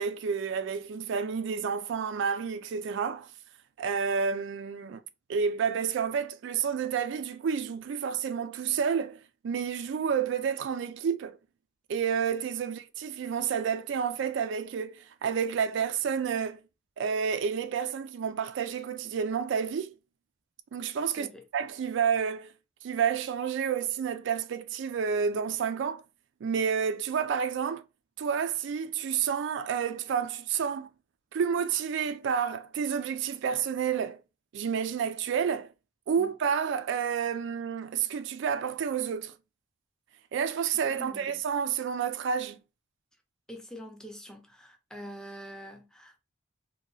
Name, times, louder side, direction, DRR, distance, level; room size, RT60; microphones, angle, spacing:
voice 1, 0.0-3.3 3.8-5.0 5.3-11.4 11.9-16.6 17.0-19.9 20.7-22.5 22.8-26.0 26.4-27.8 28.2-30.9 31.3-34.2 34.5-35.7 36.1-39.3 40.3-42.6, right 7 dB, 60° right, 0.3 m, -30 dB
voice 2, 41.0-41.4 43.5-46.2, equal, 5° left, 0.5 m, -45 dB
2.8 x 2.2 x 3.9 m
head